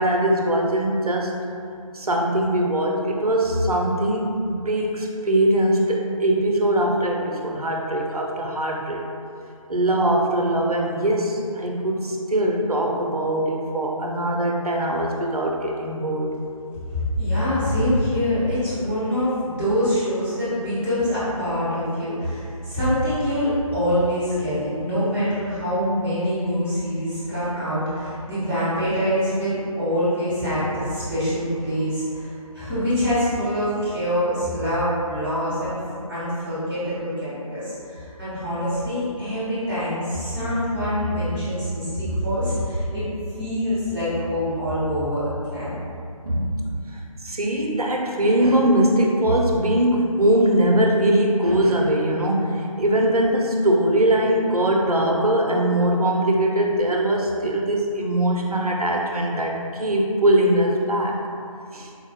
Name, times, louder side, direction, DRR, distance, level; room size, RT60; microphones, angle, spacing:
voice 1, 0.0-1.4 1.9-9.0 9.7-16.3 22.2-22.3 46.3-46.4 47.2-61.2 61.7-61.9, right 1 dB, 90° right, 0 dB, 0.6 m, -21 dB
voice 2, 17.2-35.8 36.1-43.1 43.4-45.7, equal, 5° left, -24 dB, 0.8 m, -25 dB
4.0 x 2.1 x 2.9 m, 2.5 s
figure-of-eight pair, 155°, 19 cm